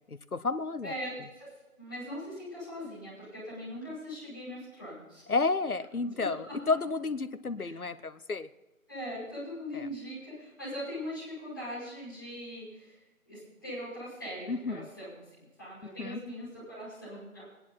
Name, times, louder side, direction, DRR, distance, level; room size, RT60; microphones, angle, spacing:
voice 1, 0.3-0.9 5.3-8.5 9.7-9.9 14.5-14.9 15.8-16.2, left 3 dB, 80° left, 13 dB, 1.0 m, -31 dB
voice 2, 0.8-1.5 1.8-5.2 6.0-6.6 7.6-7.8 8.9-12.9 13.2-17.4, equal, 5° left, -12 dB, 5.1 m, -41 dB
19.0 x 10.5 x 4.2 m, 1.0 s
figure-of-eight pair, 175°, 43 cm